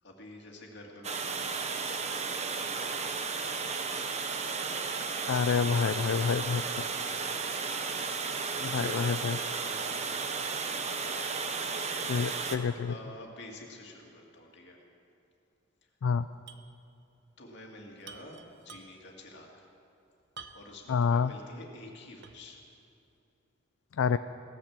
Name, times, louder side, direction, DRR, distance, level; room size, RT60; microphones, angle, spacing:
voice 1, 0.0-4.2 5.1-7.5 8.7-11.5 12.8-14.8 15.8-15.9 17.4-19.7 20.5-22.6, left 1 dB, 60° left, 0 dB, 2.4 m, -50 dB
Water, 1.0-12.6, right 5 dB, 35° right, 0.9 m, -34 dB
voice 2, 5.3-6.6 8.6-9.4 12.0-12.9 16.0-16.3 20.9-21.3 24.0-24.2, left 6 dB, 80° left, 12 dB, 0.4 m, -27 dB
sound 1, 16.5-16.7 17.0-17.1 18.0-19.2 20.4-20.9 21.4-21.5 22.2-22.6, right 5 dB, 60° right, 0.8 m, -49 dB
17.0 x 10.0 x 7.4 m, 2.7 s
head